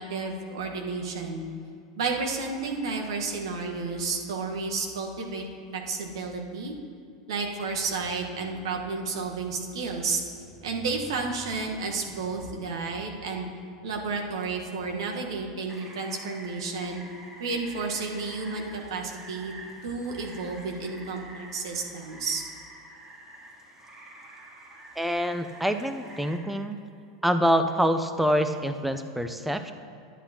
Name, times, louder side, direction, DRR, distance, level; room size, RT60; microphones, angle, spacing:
voice 1, 0.0-1.4 1.9-5.5 5.7-6.7 7.3-10.2 10.6-13.5 13.8-17.0 17.4-19.5 19.8-22.4, right 4 dB, 75° right, 1 dB, 1.3 m, -31 dB
Rain, 15.7-26.4, right 1 dB, 25° right, 2.2 m, -47 dB
voice 2, 25.0-26.8 27.2-29.7, equal, 5° right, 9 dB, 0.6 m, -26 dB
11.0 x 9.9 x 2.9 m, 2.5 s
hypercardioid pair, 95°, 3 cm